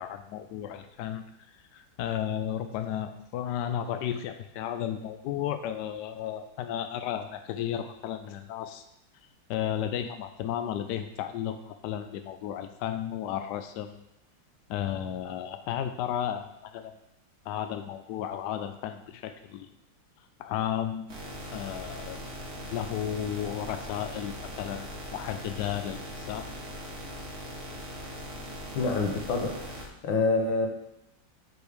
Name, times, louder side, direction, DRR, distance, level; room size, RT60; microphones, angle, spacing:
voice 1, 0.0-8.8 9.5-14.0 14.7-16.9 17.5-19.7 20.4-21.1 21.5-22.2 22.7-26.5, left 10 dB, 75° left, 8 dB, 1.1 m, -33 dB
sound 1, 21.1-29.9, equal, 35° right, 1.6 m, -40 dB
voice 2, 28.8-30.7, left 3 dB, 90° left, 3 dB, 1.8 m, -27 dB
6.1 x 5.1 x 5.1 m, 0.85 s
omnidirectional pair, 2.0 m